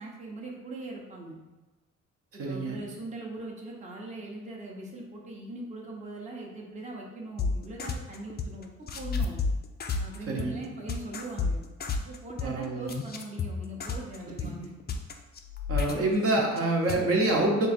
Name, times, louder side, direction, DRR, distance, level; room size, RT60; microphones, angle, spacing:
voice 1, 0.0-1.4 2.3-9.4 10.0-11.6 12.1-14.7, right 2 dB, 25° right, -2 dB, 0.8 m, -41 dB
voice 2, 2.4-2.8 10.3-10.6 12.4-12.9 14.4-14.5 15.7-17.7, right 2 dB, 50° right, -1 dB, 0.9 m, -26 dB
sound 1, 7.4-8.6 8.9-16.6 16.9-17.0, left 5 dB, 30° left, 0.5 m, -31 dB
3.7 x 2.5 x 4.2 m, 1.2 s
cardioid pair, 90°, 30 cm